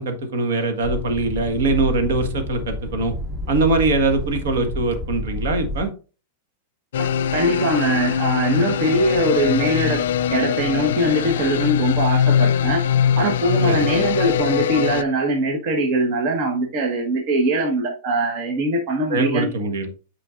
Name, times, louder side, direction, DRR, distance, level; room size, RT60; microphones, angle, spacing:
voice 1, 0.0-3.1 3.5-5.9 13.6-13.9 19.1-19.9, right 3 dB, 75° right, 6 dB, 1.6 m, -22 dB
sound 1, 0.8-5.9, equal, 10° right, 0.9 m, -30 dB
sound 2, 6.9-15.0, left 9 dB, 80° left, 0.4 m, -22 dB
voice 2, 7.0-10.0 10.3-12.8 13.2-19.5, right 1 dB, 45° right, 2 dB, 1.2 m, -21 dB
8.8 x 4.9 x 2.5 m, 0.35 s
supercardioid pair, 145°, 0 cm